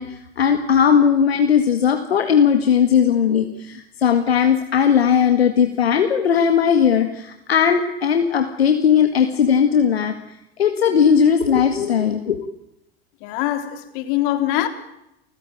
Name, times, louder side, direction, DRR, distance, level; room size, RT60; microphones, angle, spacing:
voice 1, 0.0-10.1 10.6-12.4, left 7 dB, 75° left, 2.0 m, -18 dB
voice 2, 13.2-14.7, left 14 dB, 55° left, 3.6 m, -23 dB
29.5 x 15.0 x 9.0 m
figure-of-eight pair, 80°, 31 cm